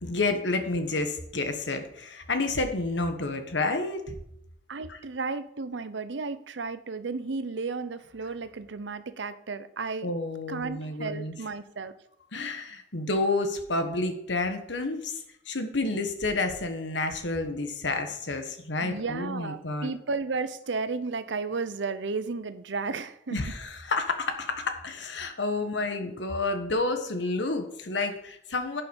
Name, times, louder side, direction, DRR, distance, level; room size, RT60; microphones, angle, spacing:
voice 1, 0.0-4.2 4.9-5.0 10.0-11.3 12.3-19.9 23.3-28.8, left 2 dB, 80° left, 6 dB, 1.4 m, -30 dB
voice 2, 4.7-10.1 10.5-11.9 18.8-23.5, right 4 dB, 80° right, 13 dB, 0.7 m, -33 dB
11.0 x 5.7 x 5.4 m, 0.76 s
head